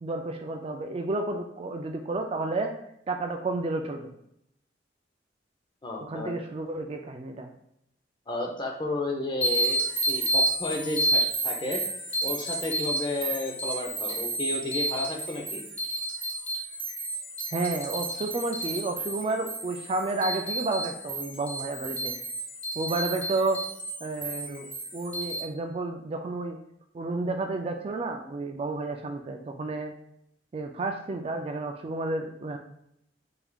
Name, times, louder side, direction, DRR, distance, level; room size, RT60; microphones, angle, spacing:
voice 1, 0.0-2.7 3.1-4.1 6.1-7.5 17.5-22.1 22.8-23.6 24.0-26.6 26.9-29.9 30.5-32.6, right 2 dB, 35° right, 4 dB, 0.3 m, -31 dB
voice 2, 5.8-6.3 8.3-9.8 10.1-11.8 12.2-15.6, left 2 dB, 25° left, 1 dB, 0.6 m, -32 dB
sound 1, 9.4-25.4, right 2 dB, 10° left, 1.2 m, -31 dB
4.6 x 3.5 x 2.3 m, 0.76 s
head